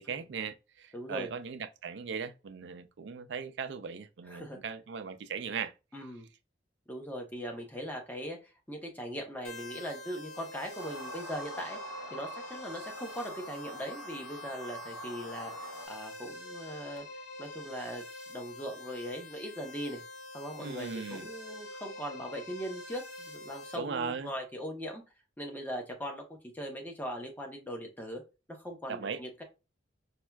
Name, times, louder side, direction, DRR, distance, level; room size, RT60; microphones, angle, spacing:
voice 1, 0.0-5.7 20.6-21.3 23.7-24.3 28.9-29.2, right 6 dB, 65° right, 0.4 m, -38 dB
voice 2, 0.9-1.3 4.3-4.6 5.9-6.3 6.9-11.8 12.1-17.1 17.4-20.0 20.3-25.0 25.4-26.3 26.5-28.2 28.5-29.4, equal, 10° left, 0.8 m, -40 dB
sound 1, 9.4-23.8, left 2 dB, 60° left, 0.9 m, -46 dB
sound 2, 10.8-15.9, right 1 dB, 80° left, 1.1 m, -44 dB
4.3 x 2.3 x 2.2 m
head